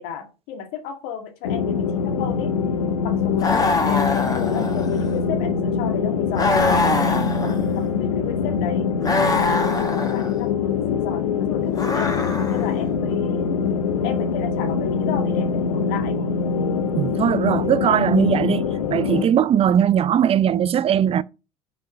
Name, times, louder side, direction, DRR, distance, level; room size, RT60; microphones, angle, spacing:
voice 1, 0.0-2.5 3.0-7.5 7.8-8.9 9.3-12.2 12.5-13.6 14.0-16.3, left 8 dB, 70° left, 2.1 m, -33 dB
sound 1, 1.4-19.2, left 6 dB, 85° left, 0.7 m, -23 dB
sound 2, 3.4-5.2 6.3-7.9 9.0-10.4 11.7-12.8, left 3 dB, 20° left, 1.6 m, -24 dB
voice 2, 16.9-21.2, right 9 dB, 35° right, 0.5 m, -19 dB
5.6 x 5.0 x 5.7 m
hypercardioid pair, 75°, 17 cm